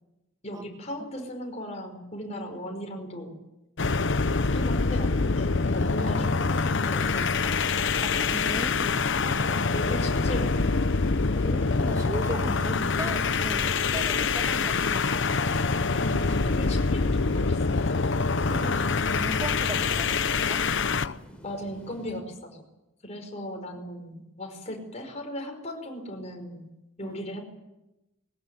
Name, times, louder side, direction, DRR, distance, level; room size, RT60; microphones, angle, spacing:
voice 1, 0.4-3.3 4.5-7.6 9.5-10.7 16.0-18.1 18.5-18.9 21.4-22.6 23.0-26.6 27.0-27.4, equal, 30° left, 3 dB, 5.2 m, -37 dB
sound 1, 3.8-21.1, left 4 dB, 60° left, 0.8 m, -25 dB
sound 2, 6.2-22.2, equal, 5° left, 3.9 m, -47 dB
voice 2, 8.0-9.5 11.4-15.2 18.6-20.7 27.0-27.2, right 1 dB, 15° right, 5 dB, 2.1 m, -38 dB
21.5 x 18.5 x 9.6 m, 0.98 s
head